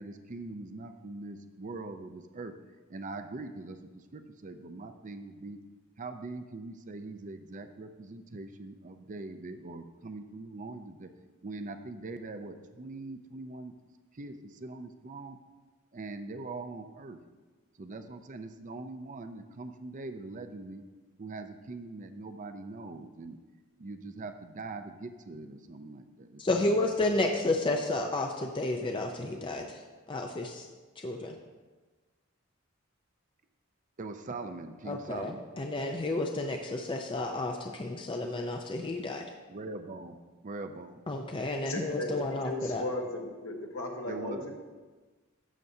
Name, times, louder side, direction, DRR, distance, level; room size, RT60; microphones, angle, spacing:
voice 1, 0.0-2.5 2.9-5.6 6.0-11.1 11.4-13.7 14.1-15.4 15.9-17.2 17.8-20.8 21.2-23.4 23.8-26.8 34.0-35.5 39.5-41.0 44.0-44.5, right 3 dB, 40° right, 8 dB, 0.5 m, -42 dB
voice 2, 26.4-29.6 30.1-30.7 31.0-31.4 34.9-39.2 41.1-42.8, left 2 dB, 25° left, 3 dB, 0.5 m, -31 dB
voice 3, 41.7-42.1 42.4-44.5, left 1 dB, 65° left, 1 dB, 1.3 m, -36 dB
12.5 x 7.7 x 2.7 m, 1.3 s
head